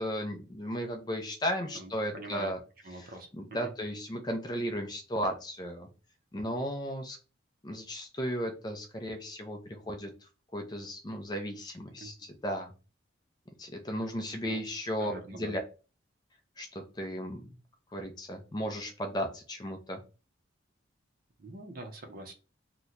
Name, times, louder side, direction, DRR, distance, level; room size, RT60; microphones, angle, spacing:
voice 1, 0.0-2.6 2.9-3.1 3.3-5.9 6.3-7.2 7.6-10.1 10.5-12.7 13.6-15.6 16.6-17.5 17.9-20.0, equal, 20° left, 4 dB, 0.4 m, -35 dB
voice 2, 1.7-2.5 2.8-3.7 12.0-12.3 14.4-14.6 15.0-15.5 21.4-22.3, right 2 dB, 45° right, 5 dB, 0.6 m, -44 dB
2.9 x 2.1 x 3.7 m, 0.34 s
head